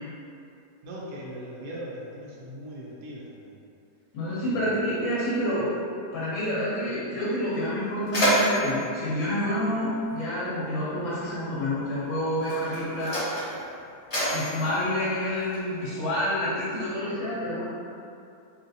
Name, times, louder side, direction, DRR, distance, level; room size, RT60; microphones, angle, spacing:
voice 1, 0.8-3.5 4.4-4.8, equal, 80° right, -5 dB, 1.2 m, -40 dB
voice 2, 4.1-5.7 6.1-13.2 14.3-17.6, equal, 70° left, -8 dB, 1.0 m, -28 dB
Mechanisms, 7.6-10.3 11.3-11.5 12.3-15.9, equal, 25° left, 0.9 m, -29 dB
3.2 x 2.7 x 2.6 m, 2.5 s
omnidirectional pair, 1.7 m